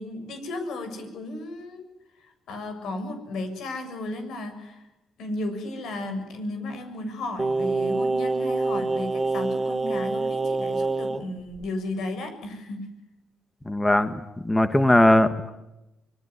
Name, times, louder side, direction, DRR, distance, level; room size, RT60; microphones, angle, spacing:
voice 1, 0.0-1.9 2.2-4.8 5.2-12.9, left 2 dB, 75° left, 7 dB, 7.1 m, -34 dB
Singing, 7.4-11.2 11.6-11.7, right 3 dB, 20° right, 1.4 m, -26 dB
voice 2, 13.7-14.1 14.4-15.5, left 1 dB, 10° left, 9 dB, 1.7 m, -19 dB
26.0 x 21.5 x 9.7 m, 0.94 s
cardioid pair, 90°, 0 cm